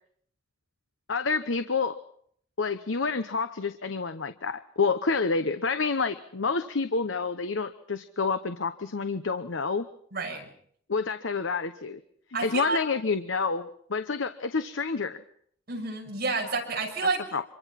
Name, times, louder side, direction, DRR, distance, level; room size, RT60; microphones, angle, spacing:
voice 1, 1.1-2.0 2.6-9.9 10.9-12.0 12.4-15.2 17.3-17.4, left 4 dB, 90° left, 10 dB, 1.0 m, -28 dB
voice 2, 10.1-10.5 12.3-12.8 15.7-17.2, right 3 dB, 55° right, 1 dB, 6.6 m, -29 dB
26.5 x 23.5 x 5.9 m, 0.65 s
head